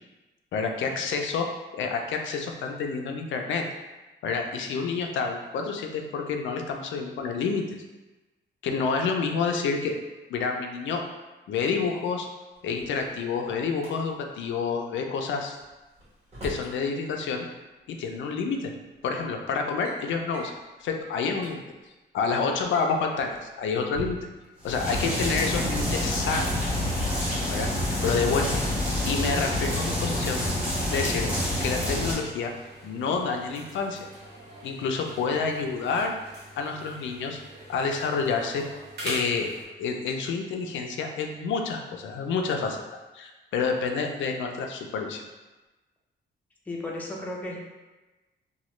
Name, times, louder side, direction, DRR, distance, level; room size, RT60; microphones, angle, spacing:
voice 1, 0.5-1.5 1.7-3.6 4.2-7.7 8.6-10.0 10.3-11.0 11.5-12.3 12.6-15.6 16.4-17.4 17.9-18.7 19.0-20.5 20.8-21.6 22.1-24.2 24.6-26.5 27.5-27.7 28.0-28.6 29.1-30.4 30.9-31.3 31.6-32.5 32.8-34.1 34.6-36.1 36.6-37.4 37.7-38.6 39.0-39.5 39.8-42.8 43.1-45.2, left 5 dB, 80° left, 3 dB, 0.4 m, -28 dB
Drawer open or close, 12.6-13.9 15.6-16.8 18.0-18.1 19.0-19.2 19.5-20.0 20.3-20.6 21.1-21.2 21.3-21.5 22.5-24.5 25.6-27.0, equal, 35° right, 1.3 m, -41 dB
sound 1, 24.6-32.1, left 1 dB, 5° right, 1.0 m, -27 dB
sound 2, 31.5-39.6, right 1 dB, 60° right, 0.9 m, -43 dB
voice 2, 46.7-47.6, left 2 dB, 10° left, -3 dB, 0.4 m, -34 dB
3.0 x 2.2 x 3.0 m, 1.1 s
cardioid pair, 145°, 19 cm